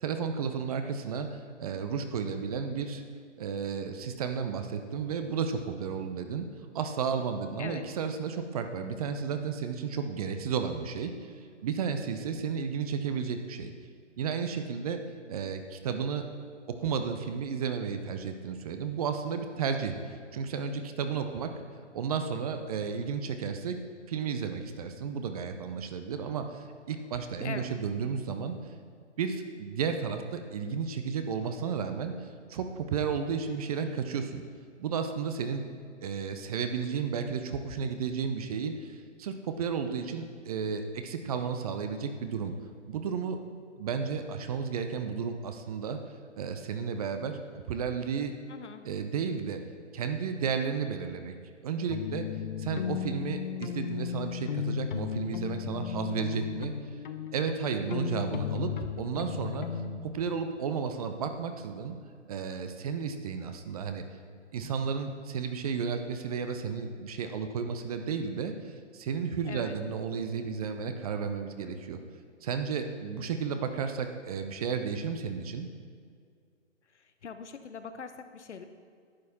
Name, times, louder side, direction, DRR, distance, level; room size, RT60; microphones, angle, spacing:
voice 1, 0.0-3.0 3.4-6.5 6.7-11.3 11.6-13.7 14.2-15.0 15.3-16.3 16.8-21.5 21.9-23.8 24.1-28.5 29.2-34.4 34.8-35.6 36.0-42.5 42.9-43.4 43.8-46.0 46.4-48.3 48.8-49.6 49.9-51.3 51.6-52.3 52.6-56.7 57.3-58.7 59.0-59.7 60.0-62.0 62.3-64.0 64.5-72.0 72.4-75.7, right 6 dB, 30° right, 7 dB, 0.7 m, -33 dB
voice 2, 48.5-48.8 69.4-69.8 76.9-78.6, left 6 dB, 70° left, 9 dB, 1.0 m, -42 dB
sound 1, 51.9-60.0, left 9 dB, 40° left, 0.6 m, -35 dB
11.0 x 8.3 x 4.2 m, 2.2 s
figure-of-eight pair, 135°, 37 cm